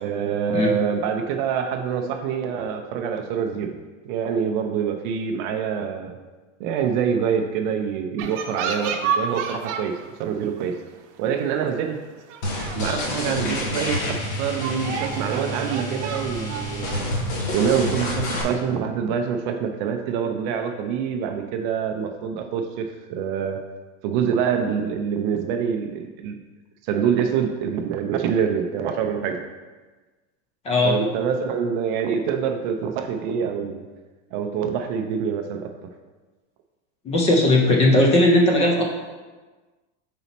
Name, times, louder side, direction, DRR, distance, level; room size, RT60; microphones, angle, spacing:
voice 1, 0.0-3.7 4.0-6.2 6.6-10.7 11.2-12.0 12.8-17.2 17.5-23.6 24.0-26.4 26.8-29.4 30.8-33.9 34.3-35.7, right 7 dB, 40° right, 5 dB, 0.4 m, -25 dB
sound 1, 8.2-10.1 10.4-10.7 11.4-11.5 11.9-12.0 12.3-13.3 13.7-13.8 14.4-18.0, right 6 dB, 70° right, 0.8 m, -31 dB
sound 2, 12.4-18.4, left 1 dB, 45° left, 1.1 m, -28 dB
voice 2, 30.6-30.9 37.1-38.8, left 1 dB, 15° left, 0 dB, 0.4 m, -17 dB
5.6 x 4.1 x 4.1 m, 1.3 s
supercardioid pair, 165°, 37 cm